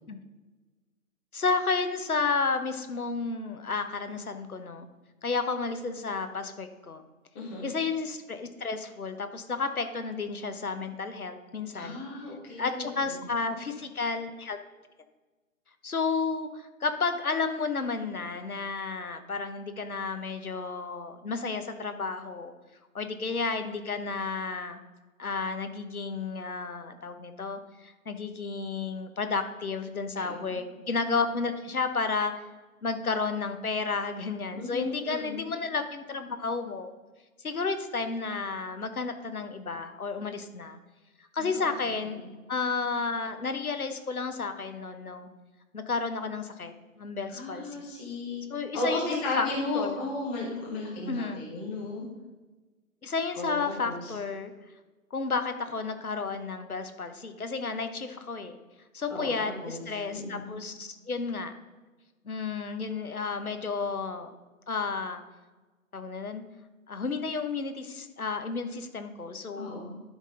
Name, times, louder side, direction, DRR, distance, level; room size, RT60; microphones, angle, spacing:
voice 1, 1.3-4.9 5.2-7.0 7.6-12.0 12.6-14.6 15.8-22.5 22.9-24.8 25.2-32.3 32.8-36.9 37.4-40.8 41.3-45.3 45.7-47.9 48.5-49.5 49.7-50.0 51.1-51.4 53.0-54.5 55.1-58.6 58.9-61.5 62.2-64.3 64.7-65.2 65.9-66.4 66.9-69.8, left 4 dB, 75° left, 8 dB, 1.1 m, -32 dB
voice 2, 7.3-7.7 11.7-12.9 13.4-13.6 30.2-30.6 34.5-35.5 41.4-41.6 42.2-42.3 47.3-48.4 48.7-52.0 53.3-53.5 53.8-54.1 59.1-59.3 59.6-59.8 60.1-60.6 69.6-70.0, left 2 dB, 10° left, -4 dB, 0.8 m, -35 dB
11.5 x 5.2 x 3.8 m, 1.2 s
figure-of-eight pair, 140°, 43 cm